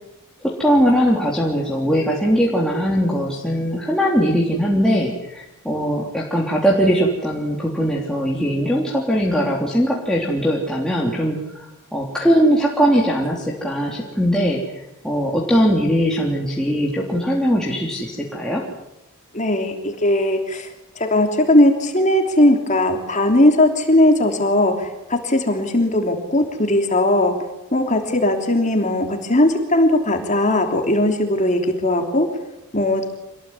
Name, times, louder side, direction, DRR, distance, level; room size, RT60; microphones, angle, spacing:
voice 1, 0.4-11.7 11.9-14.6 15.0-18.7, equal, 5° left, -3 dB, 3.5 m, -20 dB
voice 2, 19.3-20.7 20.9-27.3 27.7-32.3 32.7-33.0, left 1 dB, 35° left, 4 dB, 3.2 m, -18 dB
27.0 x 20.5 x 9.8 m, 0.89 s
head